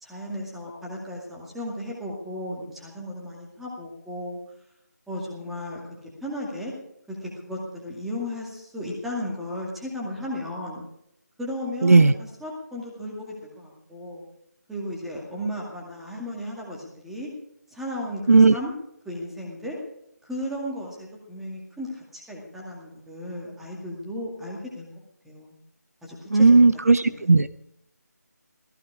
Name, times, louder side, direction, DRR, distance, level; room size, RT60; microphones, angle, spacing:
voice 1, 0.0-4.4 5.1-6.7 7.1-10.8 11.4-14.2 14.7-17.3 17.7-18.7 19.1-19.8 20.2-24.9 25.2-25.5 26.0-26.6 27.0-27.3, left 1 dB, ahead, -4 dB, 2.2 m, -35 dB
voice 2, 11.8-12.1 18.3-18.6 26.3-27.5, right 3 dB, 60° right, 13 dB, 0.7 m, -15 dB
16.5 x 15.5 x 4.8 m, 0.76 s
figure-of-eight pair, 160°, 9 cm